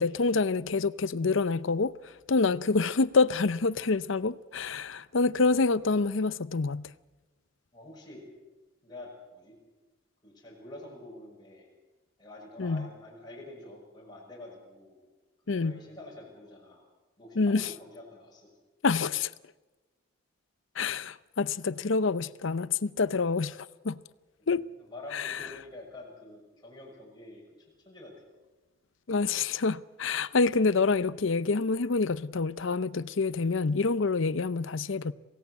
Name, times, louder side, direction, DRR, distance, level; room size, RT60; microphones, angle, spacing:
voice 1, 0.0-6.9 12.6-12.9 15.5-15.7 17.4-17.7 18.8-19.3 20.8-24.0 24.5-24.7 25.1-25.5 29.1-35.1, left 4 dB, 70° left, 0.7 m, -27 dB
voice 2, 7.7-8.2 8.8-9.6 10.2-11.7 12.2-15.0 15.4-16.8 17.2-18.5 24.5-27.4 27.8-28.1, left 2 dB, 20° left, 6.3 m, -47 dB
27.5 x 17.0 x 8.2 m
head